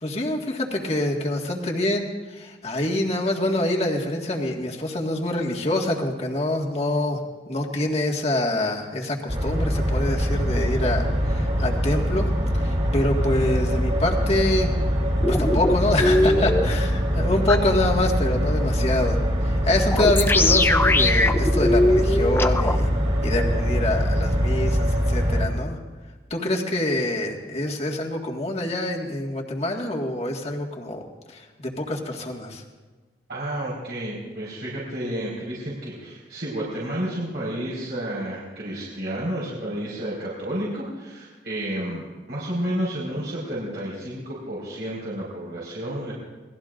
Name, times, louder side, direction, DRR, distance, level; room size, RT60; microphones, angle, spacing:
voice 1, 0.0-7.2 7.5-12.3 12.6-14.7 15.3-19.2 19.4-22.9 23.2-25.8 26.3-31.0 31.3-32.6, left 1 dB, 35° left, 0 dB, 1.8 m, -26 dB
sound 1, 9.3-25.5, equal, 40° right, 4.0 m, -23 dB
sound 2, 15.2-16.7 17.5-17.6 19.8-22.8, left 2 dB, 10° left, 0.5 m, -21 dB
voice 2, 33.3-46.1, right 1 dB, 65° right, -7 dB, 4.7 m, -31 dB
28.0 x 20.0 x 2.6 m, 1.3 s
head